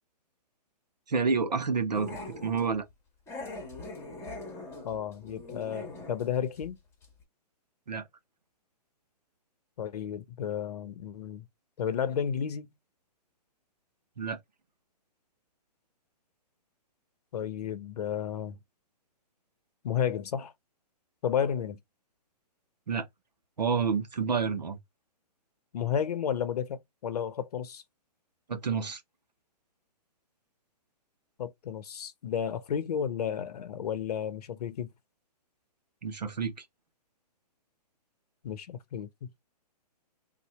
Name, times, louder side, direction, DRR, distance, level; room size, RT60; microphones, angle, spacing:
voice 1, 1.1-2.8 7.9-8.0 14.2-14.4 22.9-23.0 23.6-24.8 28.5-29.0 36.0-36.5, right 5 dB, 90° right, 0.9 m, -29 dB
Growling, 1.9-2.7 3.3-6.3 6.6-6.7 7.0-7.1, left 2 dB, 10° left, 1.5 m, -42 dB
voice 2, 4.8-6.8 9.8-11.5 11.8-12.7 17.3-18.6 19.8-20.5 21.2-21.8 25.7-27.8 31.4-34.9 38.4-39.3, left 8 dB, 70° left, 0.7 m, -32 dB
2.7 x 2.5 x 4.1 m
hypercardioid pair, 130°, 21 cm